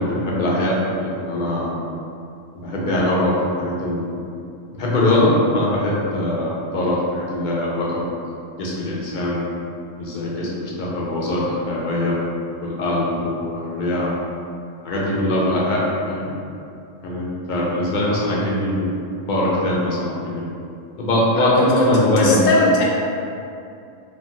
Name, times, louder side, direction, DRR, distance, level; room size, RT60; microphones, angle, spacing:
voice 1, 0.0-1.8 2.6-4.2 4.7-8.0 8.6-9.4 10.0-12.2 12.6-14.1 14.8-16.3 17.0-18.9 19.3-20.4 21.0-22.4, left 1 dB, 55° left, -5 dB, 0.6 m, -22 dB
voice 2, 22.2-22.8, left 2 dB, 90° left, -3 dB, 1.0 m, -18 dB
3.1 x 2.3 x 2.6 m, 2.5 s
omnidirectional pair, 1.3 m